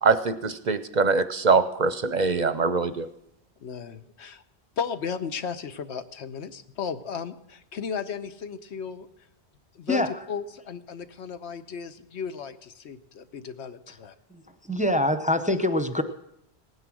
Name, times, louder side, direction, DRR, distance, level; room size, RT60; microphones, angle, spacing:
voice 1, 0.0-3.1, right 4 dB, 50° right, 12 dB, 0.6 m, -23 dB
voice 2, 3.6-4.4 4.8-9.1 9.7-14.1, left 6 dB, 85° left, 11 dB, 1.1 m, -35 dB
voice 3, 14.3-16.0, left 1 dB, 10° right, 8 dB, 0.6 m, -25 dB
17.5 x 9.8 x 6.2 m, 0.83 s
omnidirectional pair, 1.1 m